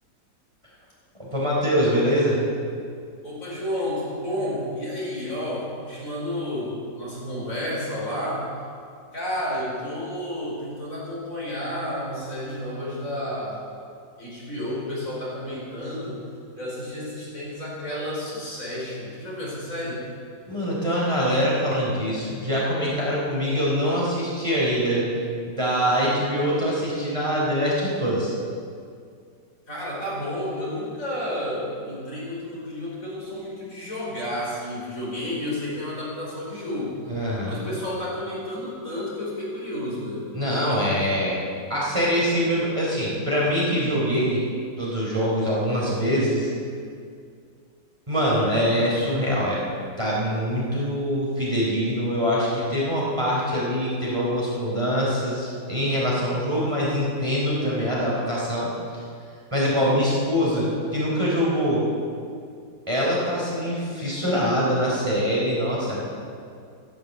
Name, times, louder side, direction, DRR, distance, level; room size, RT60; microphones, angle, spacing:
voice 1, 1.2-2.4 20.5-25.1 25.5-28.3 37.1-37.5 40.3-41.4 41.7-44.4 44.8-46.5 48.1-49.6 50.0-58.7 59.5-61.8 62.9-66.0, equal, 15° right, -6 dB, 3.8 m, -24 dB
voice 2, 3.2-8.5 9.1-13.6 14.2-16.2 16.6-20.1 29.7-40.3, left 1 dB, 45° left, -6 dB, 5.3 m, -31 dB
14.0 x 11.0 x 8.1 m, 2.2 s
omnidirectional pair, 1.9 m